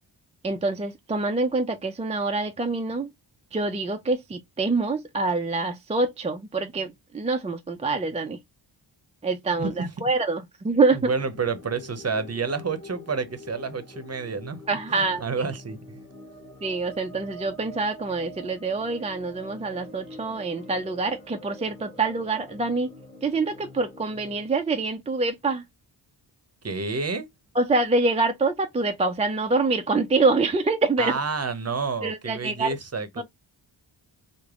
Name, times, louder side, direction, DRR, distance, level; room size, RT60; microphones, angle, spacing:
voice 1, 0.4-3.1 3.5-8.4 9.2-11.0 14.7-15.2 16.6-22.9 23.2-25.6 27.6-31.1 32.0-32.7 33.2-33.3, right 3 dB, 15° right, 0.4 m, -25 dB
voice 2, 9.6-9.9 10.9-14.6 14.9-16.0 26.6-27.3 31.0-33.2, right 4 dB, 35° right, 0.8 m, -29 dB
sound 1, 11.0-24.5, equal, 20° left, 1.5 m, -45 dB
3.3 x 2.1 x 3.5 m
cardioid pair, 60°, 46 cm